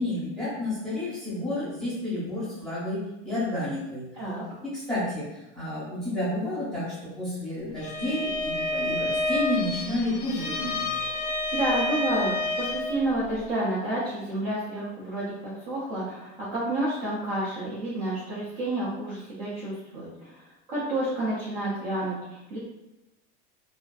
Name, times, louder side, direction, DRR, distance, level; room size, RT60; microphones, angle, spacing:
voice 1, 0.0-4.0 4.6-10.9, left 1 dB, ahead, -11 dB, 0.6 m, -30 dB
Bowed string instrument, 7.8-13.0, left 2 dB, 50° left, 0.5 m, -29 dB
voice 2, 11.5-22.6, right 1 dB, 35° right, -8 dB, 0.4 m, -30 dB
2.4 x 2.3 x 2.2 m, 0.95 s
supercardioid pair, 180°, 34 cm